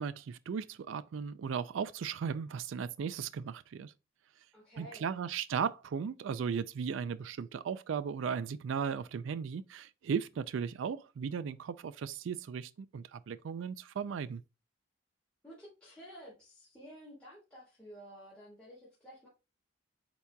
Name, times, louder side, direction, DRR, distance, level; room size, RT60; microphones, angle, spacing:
voice 1, 0.0-3.9 4.8-14.4, right 6 dB, 75° right, 0.3 m, -36 dB
voice 2, 4.5-5.2 15.4-19.3, equal, 5° left, 1.6 m, -52 dB
8.1 x 2.9 x 2.2 m
head